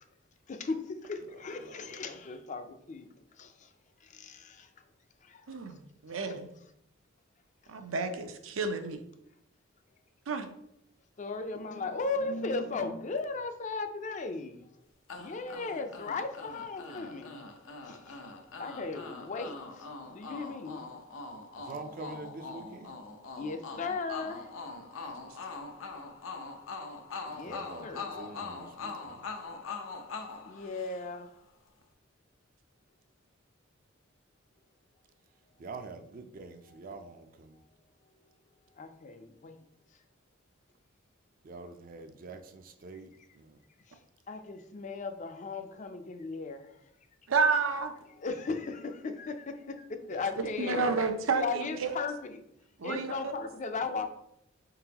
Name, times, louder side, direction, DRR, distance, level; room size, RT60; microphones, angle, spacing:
voice 1, 0.5-3.1 3.4-3.7 4.0-4.7 5.2-5.4 7.6-7.7 11.2-14.6 15.2-17.4 17.9-18.2 18.6-20.8 23.4-24.5 27.3-28.3 30.4-31.3 38.8-39.6 43.9-44.0 44.3-46.7 48.1-51.0 51.4-52.4 52.8-54.1, left 3 dB, 40° left, 7 dB, 0.4 m, -37 dB
voice 2, 1.4-2.1 21.6-22.9 25.1-25.2 27.4-29.2 35.6-37.6 41.4-43.1 43.3-43.6, right 3 dB, 45° right, 6 dB, 0.4 m, -45 dB
voice 3, 5.5-6.5 7.7-9.0 10.3-10.5 47.3-47.9 50.6-52.0 52.8-53.1, right 4 dB, 90° right, 7 dB, 0.6 m, -30 dB
sound 1, 15.1-31.3, left 4 dB, 80° left, 0.6 m, -43 dB
4.6 x 3.9 x 2.8 m, 0.76 s
head